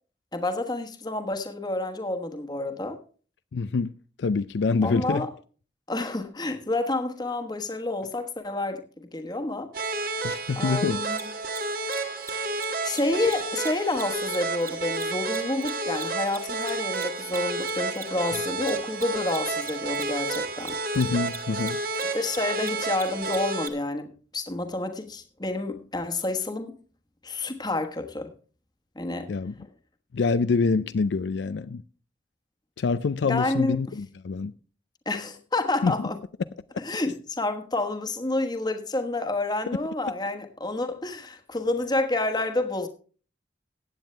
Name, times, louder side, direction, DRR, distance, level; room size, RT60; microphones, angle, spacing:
voice 1, 0.3-3.0 4.8-5.3 5.9-8.8 9.1-9.7 10.6-11.2 12.8-20.8 22.1-26.7 27.2-28.3 28.9-29.3 29.6-29.7 33.2-33.8 35.0-36.2 36.8-42.9, left 2 dB, 20° left, 1.2 m, -29 dB
voice 2, 3.5-3.9 4.2-5.3 10.2-11.0 20.9-21.8 29.3-29.5 30.1-31.8 32.8-34.5 35.8-36.1, left 4 dB, 65° left, 0.4 m, -26 dB
sound 1, 9.7-23.7, right 3 dB, 50° right, 1.4 m, -31 dB
Mechanisms, 11.1-11.2 11.5-11.6 11.8-12.0 12.2-12.3 12.6-12.7 12.9-13.0 13.2-13.3 13.6-16.4 16.6-23.7, right 4 dB, 15° right, 1.4 m, -39 dB
15.0 x 9.0 x 3.3 m
head